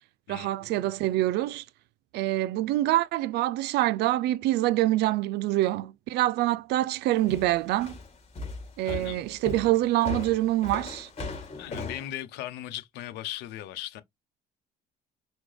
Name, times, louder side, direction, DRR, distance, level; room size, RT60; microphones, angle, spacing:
voice 1, 0.3-1.6 2.1-8.0 8.8-11.1, right 15 dB, 80° right, 0.4 m, -25 dB
sound 1, 7.3-12.1, left 3 dB, 35° left, 2.7 m, -37 dB
voice 2, 8.8-9.2 11.5-14.0, left 13 dB, 90° left, 0.9 m, -38 dB
6.1 x 2.3 x 3.3 m
cardioid pair, 110°, 17 cm